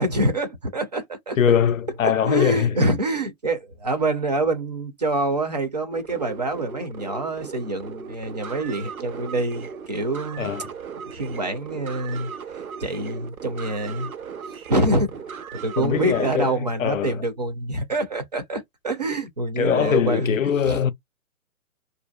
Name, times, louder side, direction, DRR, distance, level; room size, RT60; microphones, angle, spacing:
voice 1, 0.0-1.4 2.0-10.5 11.1-12.3 12.8-14.1 14.7-15.1 15.6-20.4 20.6-20.8, right 1 dB, 30° right, 0.4 m, -26 dB
voice 2, 1.4-2.8 10.4-10.6 15.8-17.2 19.6-20.9, left 8 dB, 65° left, 0.6 m, -22 dB
sound 1, 5.9-16.3, right 6 dB, 75° right, 0.8 m, -37 dB
2.5 x 2.3 x 2.3 m
figure-of-eight pair, 135°, 43 cm